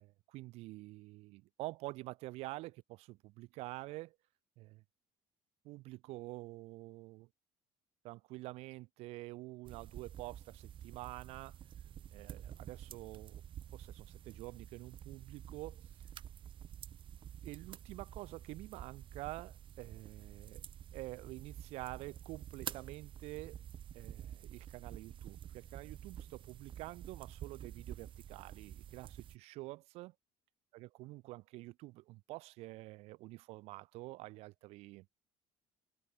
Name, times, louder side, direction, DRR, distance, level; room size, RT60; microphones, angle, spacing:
voice 1, 0.0-4.2 4.6-4.8 5.6-7.3 8.0-11.6 12.1-13.4 13.7-15.8 17.4-20.6 20.9-23.6 23.9-30.1 30.7-35.1, right 20 dB, 75° right, 1.1 m, -48 dB
sound 1, 9.6-29.4, right 10 dB, 50° right, 1.7 m, -50 dB
supercardioid pair, 90°, 11 cm